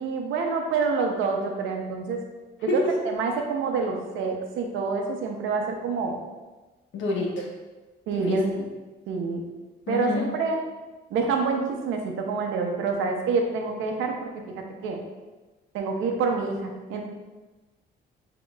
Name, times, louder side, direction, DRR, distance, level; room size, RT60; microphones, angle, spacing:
voice 1, 0.0-2.2 2.7-6.1 8.1-8.6 9.1-9.4 9.9-10.6 11.1-14.3 14.8-15.0 15.7-17.0, right 4 dB, 90° right, 3 dB, 0.7 m, -27 dB
voice 2, 6.9-7.5 8.3-8.4 9.9-10.3, left 2 dB, 75° left, -1 dB, 1.0 m, -27 dB
7.1 x 2.9 x 2.3 m, 1.2 s
cardioid pair, 90°, 20 cm